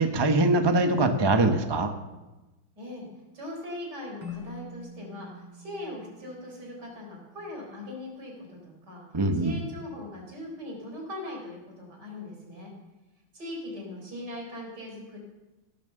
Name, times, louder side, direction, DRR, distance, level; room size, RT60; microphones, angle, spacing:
voice 1, 0.0-1.9 9.1-9.5, right 2 dB, 30° right, 6 dB, 0.4 m, -23 dB
voice 2, 2.8-3.1 3.3-9.0 9.3-12.7 13.3-15.2, left 1 dB, 55° right, -1 dB, 4.8 m, -40 dB
Keyboard (musical), 4.2-7.4, left 3 dB, 85° right, 2.8 m, -45 dB
17.0 x 7.4 x 6.9 m, 1.1 s
omnidirectional pair, 2.2 m